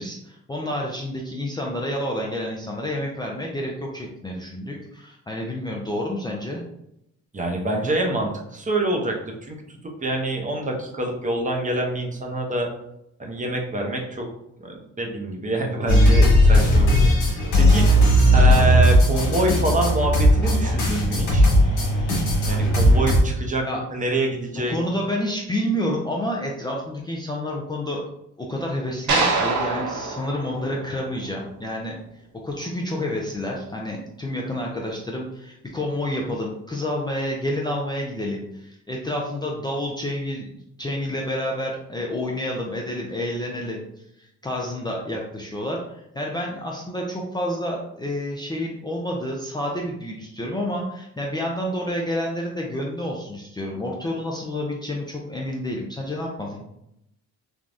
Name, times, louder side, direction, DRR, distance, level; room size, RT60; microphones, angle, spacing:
voice 1, 0.0-6.6 23.6-23.8 24.5-28.0 28.4-32.0 32.4-43.9 44.2-56.6, left 1 dB, 15° left, -2 dB, 0.4 m, -29 dB
voice 2, 7.3-9.2 9.5-9.6 10.0-12.7 13.2-14.3 14.6-17.9 18.3-21.5 22.5-24.8, right 1 dB, 25° right, 1 dB, 0.7 m, -26 dB
sound 1, 15.9-23.2, equal, 90° left, 1.2 m, -17 dB
sound 2, 29.1-31.4, right 3 dB, 80° right, 0.8 m, -25 dB
3.3 x 2.3 x 2.6 m, 0.80 s
cardioid pair, 90°, 30 cm